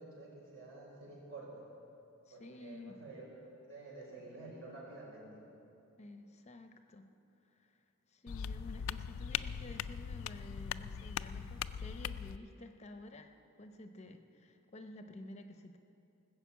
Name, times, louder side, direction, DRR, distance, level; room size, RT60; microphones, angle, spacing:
voice 1, 0.0-1.7 2.3-3.2 3.7-5.4, right 2 dB, 65° right, -4 dB, 4.4 m, -50 dB
voice 2, 2.3-3.0 6.0-7.1 7.4-7.8 8.1-13.3 13.6-15.8, left 2 dB, 30° left, 7 dB, 0.7 m, -51 dB
sound 1, 8.3-12.4, left 8 dB, 75° left, 0.3 m, -40 dB
19.5 x 6.6 x 8.3 m, 2.8 s
head